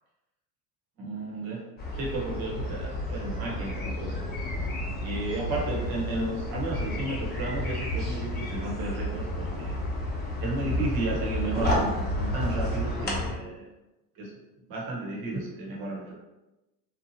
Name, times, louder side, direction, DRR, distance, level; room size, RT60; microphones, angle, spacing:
voice 1, 1.0-1.6 2.0-4.2 5.0-9.8 10.4-13.7 14.2-14.3 14.7-16.1, right 2 dB, 45° right, -2 dB, 1.1 m, -33 dB
sound 1, 1.8-13.3, left 1 dB, 20° left, 0.9 m, -31 dB
2.8 x 2.4 x 2.8 m, 1.0 s
supercardioid pair, 105°, 49 cm